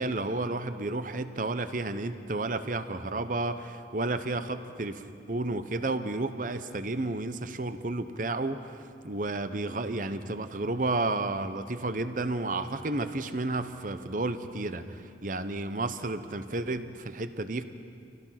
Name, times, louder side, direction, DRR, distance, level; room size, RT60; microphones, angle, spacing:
voice 1, 0.0-17.6, right 2 dB, 50° right, 10 dB, 0.9 m, -32 dB
27.0 x 17.0 x 5.9 m, 2.4 s
head